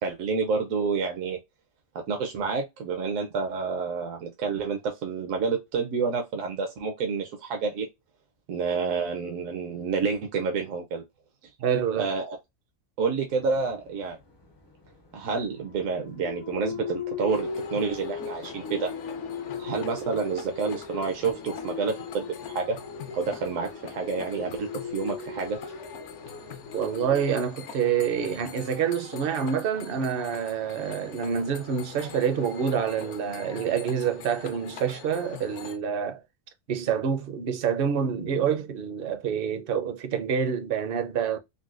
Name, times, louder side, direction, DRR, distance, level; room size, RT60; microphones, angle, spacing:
voice 1, 0.0-1.4 1.9-7.9 8.5-11.0 12.0-12.4 13.0-14.2 15.1-18.9 19.6-22.8 23.1-25.7, right 5 dB, 75° right, 1.0 m, -29 dB
voice 2, 11.6-12.1 26.7-36.2 36.7-41.4, right 7 dB, 55° right, 0.6 m, -27 dB
sound 1, 13.3-27.2, left 5 dB, 40° left, 0.3 m, -39 dB
sound 2, 17.3-35.8, left 6 dB, 65° left, 0.8 m, -44 dB
3.9 x 2.2 x 2.4 m
omnidirectional pair, 1.4 m